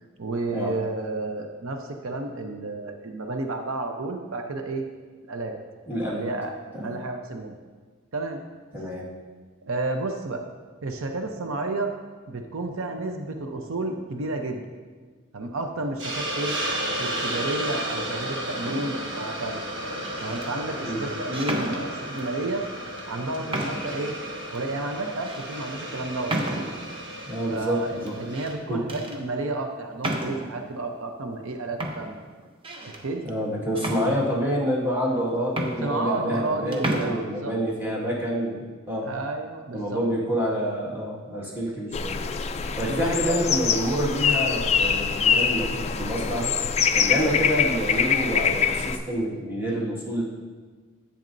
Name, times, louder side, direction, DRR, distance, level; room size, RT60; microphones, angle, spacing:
voice 1, 0.2-4.8 5.3-5.6 6.1-6.6 6.8-7.5 8.1-8.4 9.6-10.4 10.8-11.9 12.3-14.6 15.3-16.6 17.0-19.6 20.2-22.6 23.1-24.1 24.5-26.7 27.5-32.2 32.8-33.2 34.0-34.2 35.8-37.5 39.0-40.0 42.9-43.4, right 2 dB, 80° right, 4 dB, 0.7 m, -31 dB
voice 2, 5.9-6.2 6.7-7.0 8.7-9.1 20.8-21.0 27.3-28.2 28.7-28.9 33.2-39.1 39.7-42.2 42.8-46.5 46.9-50.2, equal, 10° right, -6 dB, 1.8 m, -27 dB
Hiss, 16.0-28.5, right 1 dB, 60° right, 1.2 m, -33 dB
sound 1, 18.6-19.1 19.9-20.5 21.3-22.3 23.0-23.1 23.5-24.0 24.5-24.6 25.3-25.4 26.3-26.9 28.1-28.6 28.9-29.2 30.0-30.6 31.4-31.5 31.8-33.0 33.7-34.6 35.2-35.3 35.5-36.5 36.7-37.1, right 1 dB, 25° right, 0.8 m, -32 dB
sound 2, 41.9-49.0, left 6 dB, 30° left, 0.3 m, -24 dB
10.5 x 8.6 x 2.6 m, 1.5 s
head